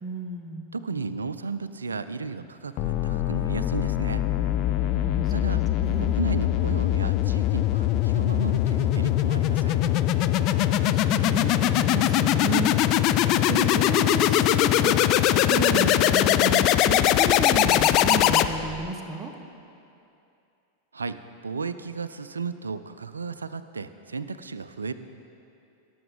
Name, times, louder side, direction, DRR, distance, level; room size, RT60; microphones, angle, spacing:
voice 1, 0.0-0.6 4.9-6.2 10.5-12.7 13.3-19.3, right 3 dB, 15° right, 3 dB, 1.0 m, -32 dB
voice 2, 0.7-4.2 5.3-5.6 6.0-9.8 20.9-21.2 21.4-24.9, right 4 dB, 75° right, 13 dB, 0.4 m, -34 dB
sound 1, 2.8-18.9, left 12 dB, 40° left, 0.3 m, -22 dB
17.5 x 7.0 x 3.6 m, 2.7 s
figure-of-eight pair, 90°, 0 cm